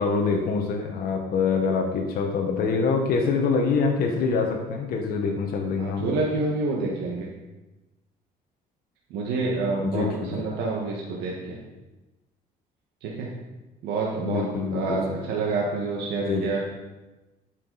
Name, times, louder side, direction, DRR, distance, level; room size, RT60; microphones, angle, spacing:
voice 1, 0.0-6.1 9.8-10.5 14.2-15.2 16.3-16.5, left 4 dB, 60° left, 1 dB, 1.3 m, -25 dB
voice 2, 5.8-7.3 9.1-11.6 13.0-13.3 13.8-14.5 14.7-16.6, right 3 dB, 90° right, -3 dB, 1.6 m, -28 dB
11.5 x 6.0 x 4.1 m, 1.1 s
cardioid pair, 110°, 17 cm